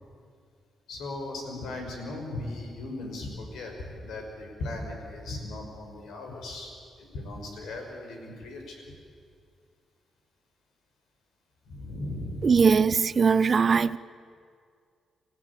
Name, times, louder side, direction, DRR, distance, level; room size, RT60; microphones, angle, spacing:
voice 1, 0.9-6.7 7.0-8.8 11.7-12.7, left 2 dB, 85° left, 5.3 m, -37 dB
voice 2, 12.4-14.0, right 5 dB, 45° right, 0.6 m, -21 dB
27.0 x 15.0 x 8.3 m
cardioid pair, 95°, 0 cm